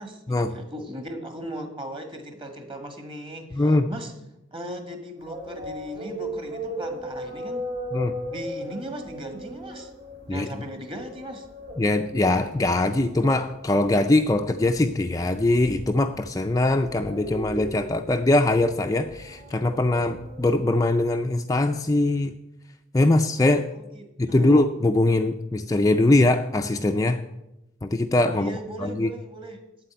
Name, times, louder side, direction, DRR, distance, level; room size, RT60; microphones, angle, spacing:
voice 1, 0.0-4.1 4.5-7.7 8.3-9.9 10.3-11.5 23.7-24.7 28.3-29.6, equal, 25° right, 6 dB, 1.7 m, -38 dB
voice 2, 3.5-3.9 7.9-8.2 10.3-10.5 11.8-22.3 22.9-23.7 24.2-27.2 27.8-29.1, left 2 dB, 15° left, 6 dB, 0.4 m, -22 dB
sound 1, 5.2-20.6, right 1 dB, 50° right, 3.6 m, -37 dB
8.7 x 8.3 x 9.0 m, 0.92 s
head